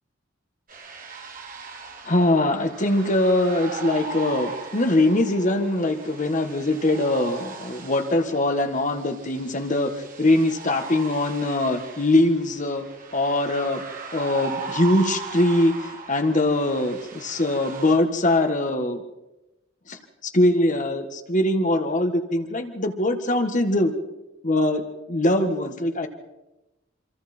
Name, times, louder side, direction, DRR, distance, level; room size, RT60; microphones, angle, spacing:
sound 1, 0.7-18.0, right 4 dB, 45° right, 2.7 m, -38 dB
voice 1, 2.0-12.8 13.1-13.8 14.1-19.0 19.9-23.9 24.4-24.8 25.1-26.1, left 1 dB, 40° left, 7 dB, 1.6 m, -22 dB
26.5 x 26.0 x 4.4 m, 0.99 s
head